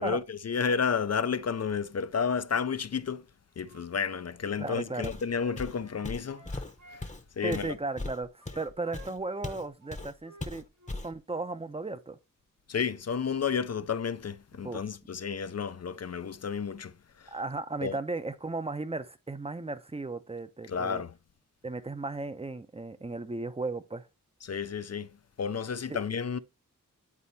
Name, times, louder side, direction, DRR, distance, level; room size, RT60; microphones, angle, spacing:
voice 1, 0.0-3.2 3.6-6.6 6.9-7.1 7.4-7.8 12.7-16.9 17.2-17.3 17.8-18.0 20.7-21.1 24.4-25.1 25.4-26.4, left 6 dB, 50° left, 0.4 m, -31 dB
Wind instrument woodwind instrument, 3.6-7.1 7.4-10.5 10.8-11.0, right 1 dB, 65° right, 2.8 m, -53 dB
voice 2, 4.6-5.1 7.4-10.6 11.0-12.2 14.5-14.9 17.3-21.0 21.6-24.1 25.9-26.0, right 3 dB, 20° right, 0.6 m, -35 dB
Walk footsteps, 5.0-5.3 5.6-9.7 9.9-10.1 10.4-11.1, left 2 dB, 20° left, 0.8 m, -38 dB
9.7 x 4.2 x 2.7 m
wide cardioid pair, 60°, 33 cm